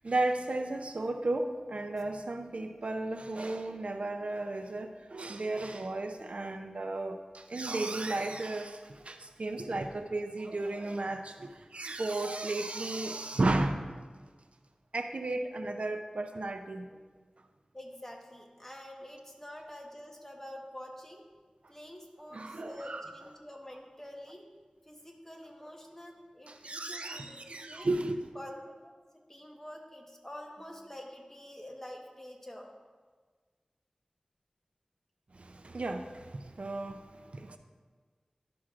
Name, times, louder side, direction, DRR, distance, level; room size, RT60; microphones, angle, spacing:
voice 1, 0.0-14.0 14.9-16.9 22.3-23.2 26.5-28.2 35.3-37.6, right 2 dB, 65° right, 7 dB, 0.5 m, -34 dB
voice 2, 17.7-21.2 21.7-24.5 24.9-27.9 28.3-28.9 29.3-32.7, left 1 dB, 20° left, 0 dB, 1.2 m, -47 dB
11.5 x 6.0 x 2.5 m, 1.5 s
wide cardioid pair, 45°, 2 cm